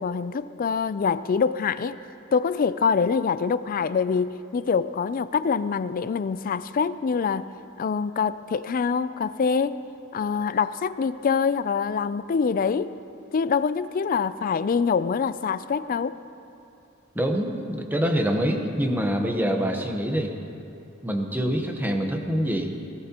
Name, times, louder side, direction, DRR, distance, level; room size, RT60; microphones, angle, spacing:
voice 1, 0.0-2.0 2.3-7.5 7.8-9.8 10.1-13.0 13.3-16.2, left 6 dB, 40° left, 15 dB, 0.3 m, -25 dB
voice 2, 17.1-20.3 21.0-22.8, equal, 10° right, 3 dB, 1.0 m, -25 dB
18.5 x 16.5 x 2.9 m, 2.7 s
head